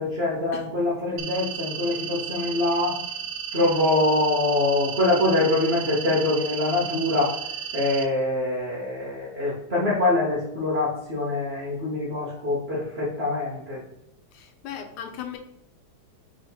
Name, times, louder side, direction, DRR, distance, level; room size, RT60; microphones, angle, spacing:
voice 1, 0.0-3.0 3.5-7.3 7.7-13.8, left 2 dB, 45° right, -5 dB, 0.8 m, -24 dB
sound 1, 1.2-8.0, right 8 dB, 75° right, 1.2 m, -34 dB
voice 2, 14.3-15.4, left 9 dB, 85° left, 6 dB, 1.5 m, -37 dB
3.5 x 3.3 x 4.4 m, 0.78 s
omnidirectional pair, 2.3 m